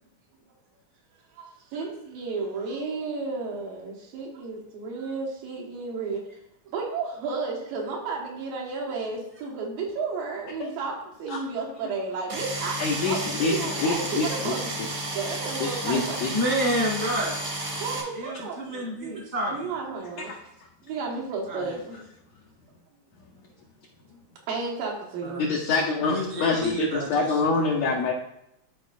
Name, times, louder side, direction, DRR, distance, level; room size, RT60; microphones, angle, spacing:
voice 1, 1.4-6.2 6.7-14.9 15.1-16.3 17.8-19.2 19.5-20.3 20.8-22.0 24.5-25.5, right 4 dB, 80° right, -1 dB, 3.0 m, -33 dB
sound 1, 12.3-18.0, right 1 dB, 50° right, 1.2 m, -32 dB
voice 2, 12.8-14.5 15.6-16.3 20.3-20.4 25.4-28.1, left 4 dB, 85° left, -1 dB, 1.5 m, -26 dB
voice 3, 16.3-17.4 18.1-19.5 21.5-21.8 25.2-25.5 26.0-27.6, equal, 25° left, -4 dB, 0.8 m, -29 dB
12.0 x 4.5 x 2.5 m, 0.80 s
omnidirectional pair, 4.0 m